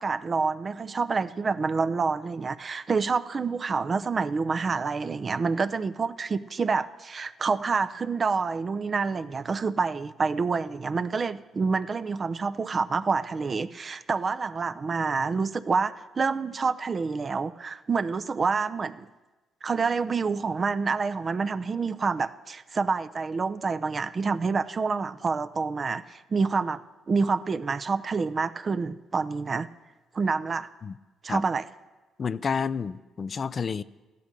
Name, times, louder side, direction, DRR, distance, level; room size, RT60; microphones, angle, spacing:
voice 1, 0.0-19.1 19.6-29.7 30.1-30.7 31.2-31.6, right 4 dB, 40° right, 13 dB, 0.6 m, -27 dB
voice 2, 32.2-33.8, left 6 dB, 45° left, 16 dB, 0.4 m, -30 dB
14.5 x 11.5 x 6.7 m, 1.2 s
supercardioid pair, 70°, 0 cm